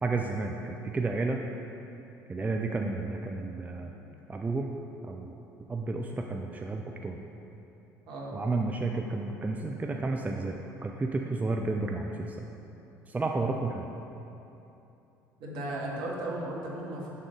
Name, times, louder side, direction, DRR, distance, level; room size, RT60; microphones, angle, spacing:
voice 1, 0.0-1.4 2.3-3.9 4.3-4.7 5.0-5.3 5.7-7.3 8.3-12.4 13.1-13.9, right 3 dB, 15° right, 2 dB, 0.4 m, -31 dB
voice 2, 8.1-8.4 13.3-13.5 15.4-17.2, right 1 dB, 55° right, -3 dB, 1.5 m, -36 dB
9.6 x 3.7 x 5.1 m, 2.9 s
figure-of-eight pair, 60°, 10 cm